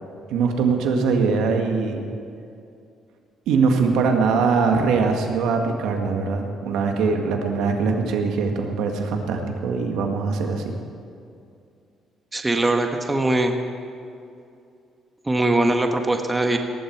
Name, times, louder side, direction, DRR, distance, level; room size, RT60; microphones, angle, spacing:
voice 1, 0.3-2.0 3.5-10.7, right 4 dB, 85° right, 3 dB, 1.9 m, -22 dB
voice 2, 12.3-13.5 15.2-16.6, right 2 dB, 15° right, 5 dB, 1.3 m, -21 dB
18.5 x 15.5 x 4.7 m, 2.5 s
cardioid pair, 100°, 0 cm